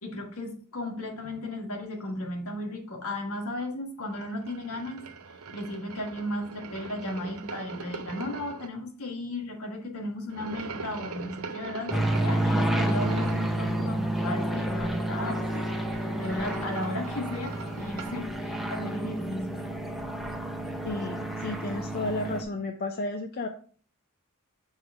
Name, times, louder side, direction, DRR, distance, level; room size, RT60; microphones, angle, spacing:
voice 1, 0.0-5.0 5.5-15.7 16.1-19.6, left 1 dB, 70° left, 2 dB, 1.5 m, -35 dB
sound 1, 4.1-8.7 10.3-13.5 15.6-18.2, right 4 dB, 70° right, 0.8 m, -41 dB
sound 2, 11.9-22.4, right 1 dB, ahead, 0.6 m, -30 dB
voice 2, 20.8-23.5, left 2 dB, 45° left, 4 dB, 0.6 m, -32 dB
6.3 x 3.8 x 4.7 m, 0.43 s
head